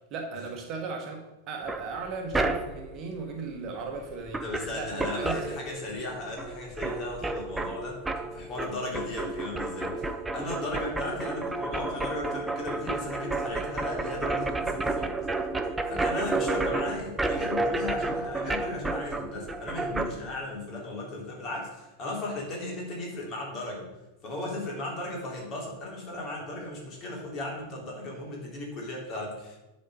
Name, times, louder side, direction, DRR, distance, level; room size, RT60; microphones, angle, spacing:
voice 1, 0.1-4.4 4.7-5.5 16.5-16.7, right 4 dB, 35° right, 2 dB, 1.3 m, -37 dB
sound 1, 1.7-2.9 4.0-4.1 4.3-6.1 6.4-20.1, right 2 dB, 10° right, 0.6 m, -31 dB
voice 2, 4.4-8.0 8.3-15.1 15.9-23.9 24.2-29.6, left 2 dB, 30° left, -2 dB, 3.0 m, -36 dB
10.5 x 4.3 x 5.4 m, 1.0 s
figure-of-eight pair, 90°, 0 cm